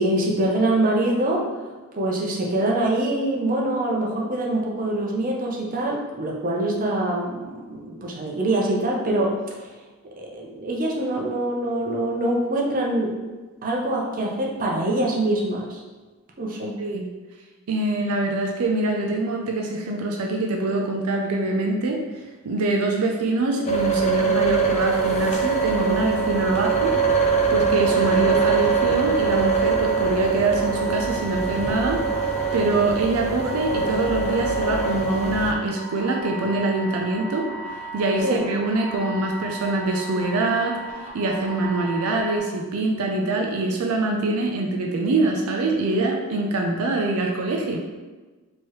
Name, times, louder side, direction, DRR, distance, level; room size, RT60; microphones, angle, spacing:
voice 1, 0.0-1.5 1.9-9.4 10.2-13.1 13.6-15.8 16.4-16.8 38.2-38.5, right 1 dB, 40° right, -2 dB, 0.7 m, -24 dB
voice 2, 17.7-22.0 22.4-26.9 27.5-37.5 37.9-40.8 41.1-47.8, right 2 dB, 80° right, 1 dB, 0.5 m, -24 dB
sound 1, 23.7-35.5, right 5 dB, 30° left, 0.4 m, -23 dB
sound 2, 24.8-42.4, right 3 dB, 10° right, 0.9 m, -36 dB
4.6 x 3.0 x 3.0 m, 1.3 s
head